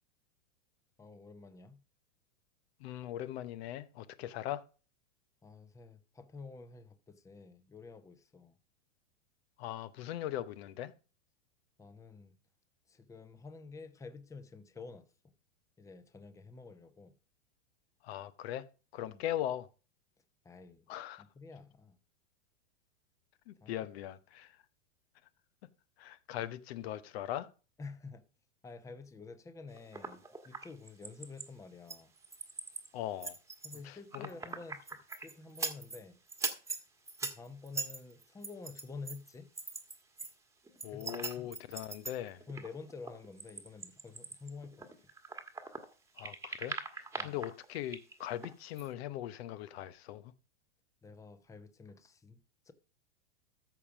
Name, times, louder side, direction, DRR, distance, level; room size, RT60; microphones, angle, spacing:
voice 1, 1.0-1.8 5.4-8.6 11.8-12.4 12.9-15.1 15.8-17.1 19.0-19.3 20.4-20.8 21.2-22.0 23.6-23.8 27.8-28.2 28.6-32.1 33.6-36.2 37.2-39.5 40.9-41.5 42.5-44.9 47.2-47.4 51.0-52.4 52.6-52.7, left 4 dB, 10° left, 0.8 m, -49 dB
voice 2, 2.8-4.6 9.6-10.9 18.0-18.7 18.9-19.7 20.9-21.2 23.5-24.5 26.0-27.5 32.9-33.4 33.8-34.3 40.8-42.4 46.2-50.3, left 12 dB, 55° left, 0.9 m, -40 dB
sound 1, 29.8-31.5 31.9-32.9 33.2-36.0 36.3-40.3 40.7-45.9 46.2-48.5 48.8-48.9, right 4 dB, 10° right, 1.4 m, -41 dB
14.0 x 5.6 x 5.0 m
hypercardioid pair, 115°, 37 cm